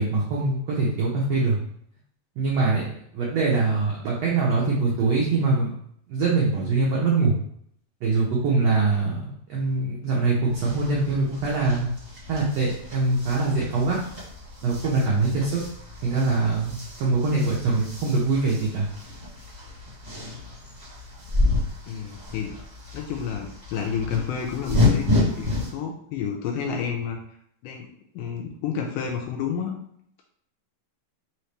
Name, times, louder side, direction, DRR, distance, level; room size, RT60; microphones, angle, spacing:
voice 1, 0.0-1.6 2.4-2.9 3.1-5.7 6.1-7.3 8.0-11.9 12.3-14.0 14.6-15.6 16.0-18.9, right 3 dB, 80° right, -4 dB, 1.4 m, -23 dB
sound 1, 10.5-25.7, left 2 dB, 25° right, 0.9 m, -30 dB
voice 2, 21.9-22.5 22.9-25.1 25.4-27.2 27.6-27.9 28.1-29.7, left 7 dB, 80° left, 1 dB, 2.1 m, -30 dB
5.5 x 2.9 x 3.3 m, 0.67 s
omnidirectional pair, 4.1 m